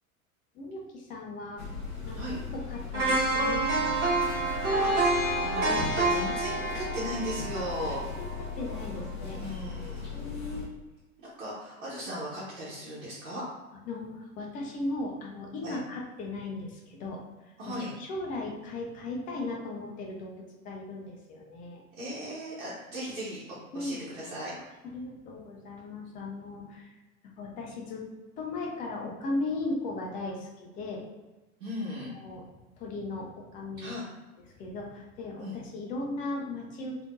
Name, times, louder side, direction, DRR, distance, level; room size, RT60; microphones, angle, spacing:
voice 1, 0.5-1.6 2.0-4.2 7.6-7.7 8.0-9.4 10.1-10.8 11.9-12.0 13.9-21.8 23.7-24.0 24.8-27.0 27.4-28.0 28.4-31.0 32.1-32.4 32.8-33.9 34.5-37.0, left 2 dB, 20° left, 0 dB, 0.5 m, -37 dB
sound 1, 1.6-10.7, left 5 dB, 45° left, 1.2 m, -38 dB
sound 2, 2.9-9.0 9.3-9.5, right 2 dB, 30° right, 1.4 m, -28 dB
voice 2, 4.5-8.1 9.4-10.1 11.2-13.4 15.6-15.8 17.6-17.9 21.9-23.4 23.7-24.5 31.6-32.1 33.8-34.0 35.4-35.6, equal, 60° right, -9 dB, 1.2 m, -37 dB
3.4 x 2.7 x 2.4 m, 1.1 s
figure-of-eight pair, 95°, 43 cm